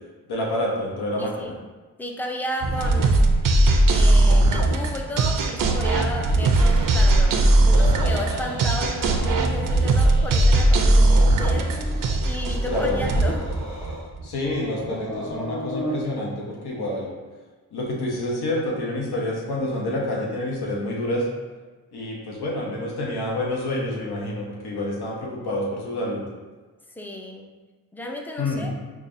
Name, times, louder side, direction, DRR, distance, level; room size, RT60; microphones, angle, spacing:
voice 1, 0.3-1.5 12.7-13.0 14.2-17.1 17.7-21.3 21.9-26.2 28.4-28.7, left 1 dB, 85° left, -3 dB, 0.8 m, -28 dB
voice 2, 1.2-1.6 2.0-3.4 3.9-7.4 7.7-13.5 26.9-27.5 27.9-28.7, left 1 dB, 5° left, 1 dB, 0.3 m, -33 dB
sound 1, 2.6-14.3, right 2 dB, 60° right, 0.4 m, -19 dB
sound 2, 7.7-9.3 9.6-10.5 10.8-12.1 12.5-14.1 14.4-16.0, equal, 45° left, 0.8 m, -36 dB
5.2 x 2.3 x 2.5 m, 1.3 s
wide cardioid pair, 115°, 38 cm